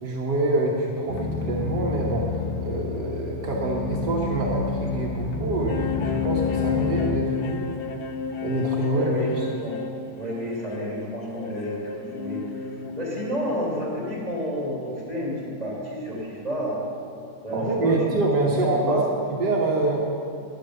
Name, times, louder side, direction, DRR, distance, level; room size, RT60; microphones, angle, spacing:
voice 1, 0.0-2.3 2.6-7.7 8.4-9.5 17.5-20.0, right 2 dB, 75° right, -2 dB, 1.8 m, -26 dB
sound 1, 1.1-7.2, left 6 dB, 90° left, 1.7 m, -30 dB
sound 2, 5.7-14.2, left 7 dB, 65° left, 0.5 m, -32 dB
voice 2, 8.9-9.8 10.2-12.5 12.9-16.8 17.4-18.2 18.6-19.0, equal, 20° right, -5 dB, 3.6 m, -30 dB
11.5 x 10.0 x 6.7 m, 2.4 s
omnidirectional pair, 1.8 m